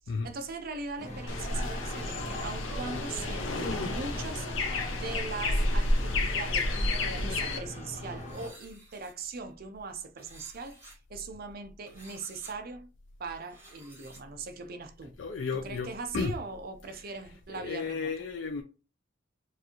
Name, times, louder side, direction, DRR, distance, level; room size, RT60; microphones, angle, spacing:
voice 1, 0.1-10.8 11.1-12.9 13.2-15.2 15.5-18.1, right 4 dB, 50° right, 0.6 m, -40 dB
sound 1, 1.0-8.5, equal, 35° left, 1.2 m, -40 dB
sound 2, 1.3-7.6, left 2 dB, 85° left, 0.9 m, -30 dB
sound 3, 8.2-9.1 10.2-11.0 11.9-12.5 13.4-14.2, right 2 dB, 15° right, 1.7 m, -53 dB
voice 2, 15.2-16.3 17.5-18.6, left 4 dB, 70° left, 0.5 m, -33 dB
4.7 x 2.5 x 2.9 m
head